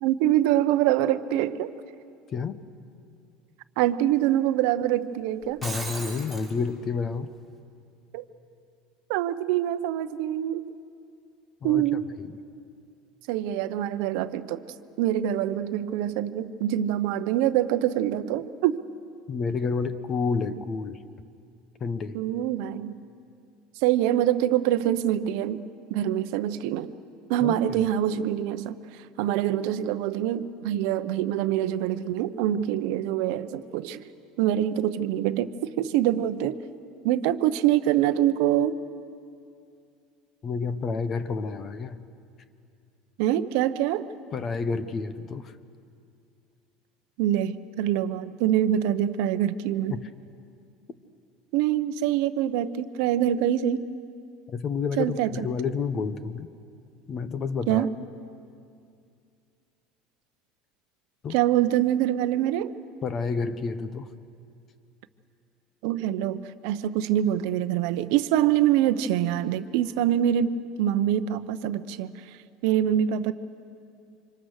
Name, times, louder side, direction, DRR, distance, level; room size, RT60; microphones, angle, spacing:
voice 1, 0.0-1.7 3.8-5.6 8.1-8.2 9.1-10.8 11.6-12.0 13.3-14.6 15.0-18.8 22.1-22.9 23.8-25.6 25.9-26.9 27.3-28.7 29.2-34.0 34.4-36.6 37.0-38.8 43.2-44.1 47.2-50.0 51.5-53.9 55.0-55.5 57.7-57.9 61.3-62.8 65.8-70.5 70.8-72.1 72.6-73.3, right 11 dB, 60° right, 11 dB, 0.8 m, -25 dB
Shatter, 5.4-6.5, right 2 dB, 10° left, 3.5 m, -36 dB
voice 2, 5.6-7.3 11.6-12.4 19.3-21.0 21.8-22.2 27.4-27.8 40.4-42.0 44.3-45.5 49.9-50.1 54.5-56.5 57.1-57.9 61.2-61.4 63.0-64.1, left 5 dB, 25° left, 13 dB, 0.8 m, -30 dB
29.0 x 26.0 x 6.5 m, 2.4 s
cardioid pair, 170°, 0 cm